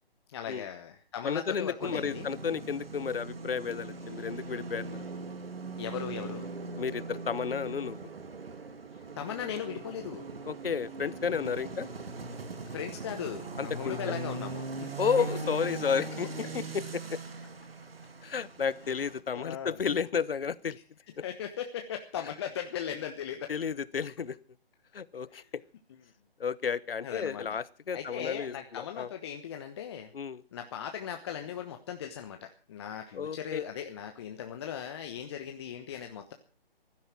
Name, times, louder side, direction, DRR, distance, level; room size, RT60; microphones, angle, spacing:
voice 1, 0.3-2.3 5.8-6.5 9.2-10.3 12.7-15.3 19.3-19.8 21.2-23.5 25.3-25.5 27.0-27.6 27.9-30.1 30.5-36.3, left 9 dB, 25° left, 5 dB, 1.0 m, -38 dB
voice 2, 1.2-5.0 6.8-8.0 10.5-11.9 13.6-14.1 15.0-16.3 16.5-17.2 18.2-20.8 23.5-24.4 24.9-25.4 26.4-29.1 30.1-30.4 33.1-33.6, left 6 dB, 70° left, 19 dB, 1.0 m, -32 dB
sound 1, 1.8-19.2, right 3 dB, 70° right, 2.3 m, -40 dB
15.5 x 12.0 x 6.0 m, 0.38 s
figure-of-eight pair, 150°, 30 cm